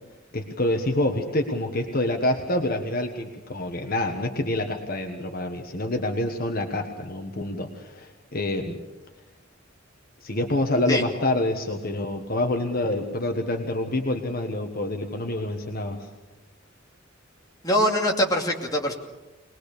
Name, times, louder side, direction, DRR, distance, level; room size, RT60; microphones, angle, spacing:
voice 1, 0.3-8.8 10.2-16.1, left 1 dB, 50° left, 4 dB, 1.4 m, -27 dB
voice 2, 17.6-18.9, equal, 20° left, 0 dB, 2.6 m, -23 dB
22.0 x 20.5 x 6.8 m, 1.1 s
head